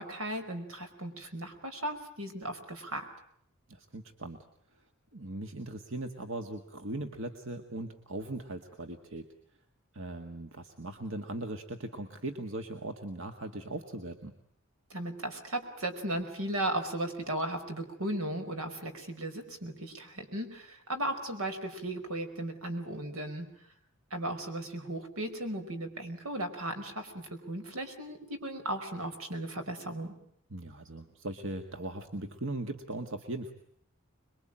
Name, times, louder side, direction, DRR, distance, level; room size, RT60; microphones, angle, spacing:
voice 1, 0.0-3.1 14.9-23.5 24.1-30.1, right 1 dB, 85° right, 7 dB, 5.0 m, -36 dB
voice 2, 3.7-4.4 4.7-4.8 5.1-9.3 9.9-14.4 30.5-33.5, right 2 dB, 65° right, 5 dB, 1.9 m, -39 dB
26.5 x 22.5 x 8.9 m, 0.70 s
head